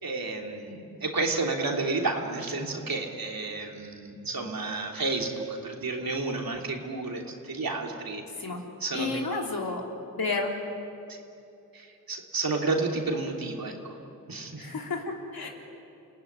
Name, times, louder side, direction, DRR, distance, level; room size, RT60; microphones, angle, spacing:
voice 1, 0.0-8.2 8.8-9.2 11.7-14.0 14.3-14.7, right 3 dB, 80° right, 1 dB, 3.2 m, -31 dB
voice 2, 8.9-9.8 10.1-10.5 14.6-15.5, left 3 dB, 85° left, 0 dB, 3.4 m, -31 dB
28.5 x 17.5 x 10.0 m, 2.7 s
wide cardioid pair, 65°, 35 cm